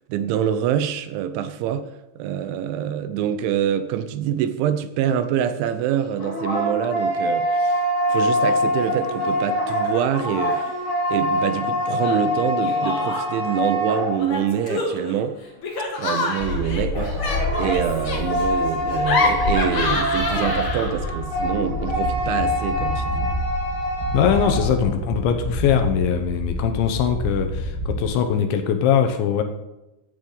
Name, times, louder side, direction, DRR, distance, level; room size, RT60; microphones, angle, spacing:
voice 1, 0.1-7.8 8.1-10.8 11.1-15.4 16.0-23.3, right 9 dB, 80° right, 11 dB, 2.9 m, -25 dB
sound 1, 5.9-14.6 16.9-24.7, equal, 35° left, 4.1 m, -25 dB
Laughter, 8.1-8.6 8.8-9.4 9.8-10.7 12.0-13.5 14.2-21.1, left 3 dB, 55° left, 1.5 m, -28 dB
sound 2, 16.4-28.0, left 1 dB, ahead, 4.3 m, -28 dB
voice 2, 24.1-29.4, left 8 dB, 75° left, 7 dB, 3.0 m, -21 dB
15.0 x 10.0 x 3.9 m, 0.97 s
omnidirectional pair, 5.6 m